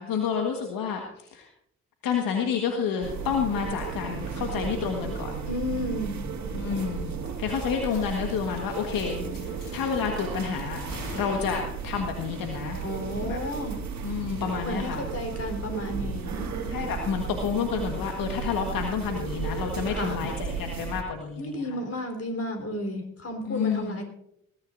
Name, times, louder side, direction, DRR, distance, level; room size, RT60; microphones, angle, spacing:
voice 1, 0.0-1.5 2.0-5.4 6.5-7.1 7.4-10.8 11.1-12.8 13.2-13.4 14.0-15.0 16.6-21.8 23.5-24.0, left 6 dB, 65° left, 3 dB, 1.6 m, -29 dB
sound 1, 3.0-21.0, right 5 dB, 50° right, 2.3 m, -34 dB
voice 2, 5.5-6.2 12.8-13.8 14.6-16.5 19.9-20.2 21.4-24.0, equal, 40° left, 5 dB, 4.2 m, -32 dB
sound 2, 7.8-8.0 8.3-8.5 8.8-9.0 9.3-10.2 10.6-11.9, left 2 dB, 80° left, 5.5 m, -43 dB
21.0 x 13.5 x 2.6 m, 0.75 s
hypercardioid pair, 45°, 36 cm